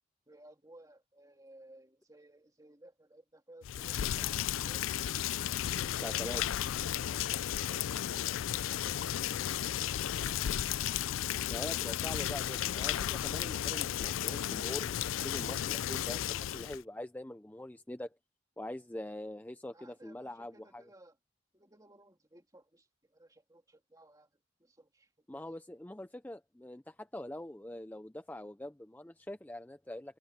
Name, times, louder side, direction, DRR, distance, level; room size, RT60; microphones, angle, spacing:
voice 1, 0.3-5.0 6.9-8.4 19.7-21.2 21.5-24.3 24.6-25.4, right 1 dB, 20° right, 2.7 m, -59 dB
Rain, 3.6-16.8, left 11 dB, 85° left, 0.4 m, -34 dB
voice 2, 5.9-6.4 11.5-18.2 18.6-20.9 25.3-30.2, left 1 dB, 10° left, 0.4 m, -43 dB
head